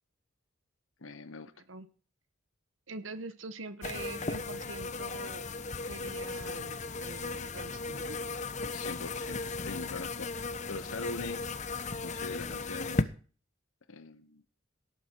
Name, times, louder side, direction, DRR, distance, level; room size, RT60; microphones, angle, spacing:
voice 1, 1.0-1.5 8.7-11.5 12.0-13.1 13.9-14.4, left 4 dB, 85° left, 1.1 m, -42 dB
voice 2, 2.9-5.4 5.8-8.2, right 3 dB, 75° right, 1.4 m, -44 dB
sound 1, 3.8-13.0, left 3 dB, 35° left, 0.9 m, -36 dB
17.5 x 11.0 x 4.6 m
head